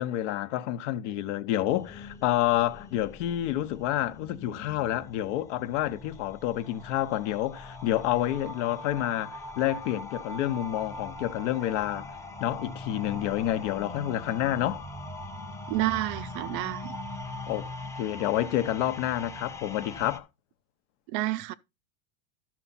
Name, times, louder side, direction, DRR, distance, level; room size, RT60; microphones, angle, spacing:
voice 1, 0.0-12.1 12.4-14.8 17.5-17.7 18.0-20.3, left 13 dB, 55° left, 1.0 m, -29 dB
sound 1, 1.7-20.2, left 1 dB, 5° left, 0.9 m, -41 dB
voice 2, 15.7-17.0 21.1-21.5, right 16 dB, 40° right, 0.5 m, -29 dB
12.5 x 6.0 x 4.0 m
hypercardioid pair, 115°, 42 cm